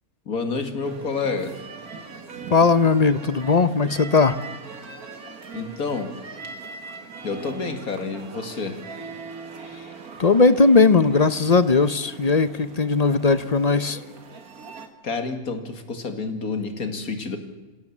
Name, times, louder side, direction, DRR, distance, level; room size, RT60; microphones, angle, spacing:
voice 1, 0.3-1.5 5.5-6.1 7.2-8.8 15.0-17.4, left 4 dB, 75° left, 7 dB, 2.6 m, -29 dB
sound 1, 0.8-14.9, right 4 dB, 80° right, 2.4 m, -40 dB
voice 2, 2.5-4.4 10.2-14.0, left 4 dB, 35° left, 14 dB, 0.7 m, -18 dB
27.0 x 16.5 x 7.2 m, 1.1 s
omnidirectional pair, 1.5 m